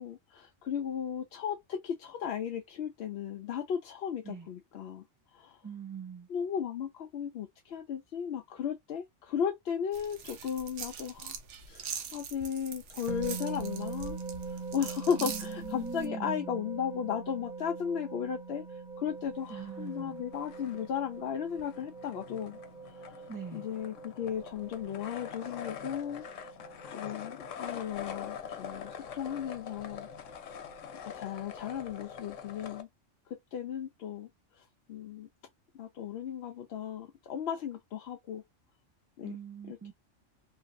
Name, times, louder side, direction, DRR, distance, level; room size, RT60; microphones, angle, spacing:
voice 1, 0.0-5.0 5.3-5.6 6.3-11.4 11.7-14.2 14.7-22.6 22.9-23.3 23.5-26.5 26.9-30.1 31.0-32.9 33.3-34.3 34.6-35.3 35.7-38.4 39.2-39.3 39.7-39.9, left 8 dB, 65° left, 0.7 m, -36 dB
voice 2, 5.6-6.3 15.2-16.6 19.5-20.2 23.3-23.7 39.2-39.9, right 5 dB, 20° right, 0.7 m, -42 dB
sound 1, 9.9-16.1, right 6 dB, 75° right, 1.0 m, -43 dB
sound 2, 13.1-32.4, right 4 dB, 45° right, 1.0 m, -44 dB
sound 3, 19.3-20.0 20.3-32.8, left 8 dB, 90° left, 1.0 m, -44 dB
3.2 x 2.7 x 2.5 m
omnidirectional pair, 1.3 m